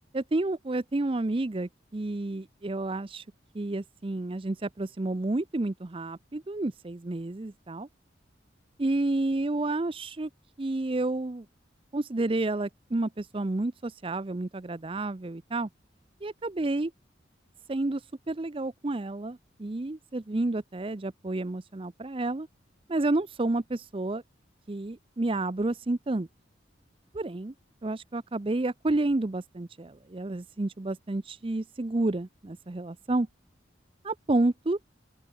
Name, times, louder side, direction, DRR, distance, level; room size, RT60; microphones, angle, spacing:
voice 1, 0.1-3.2 3.5-7.9 8.8-10.3 10.6-11.5 11.9-15.7 16.2-16.9 17.7-18.0 18.3-22.5 22.9-24.2 24.7-26.3 27.1-27.5 27.8-33.3 34.0-34.8, right 2 dB, 30° right, 0.5 m, -30 dB
open air
head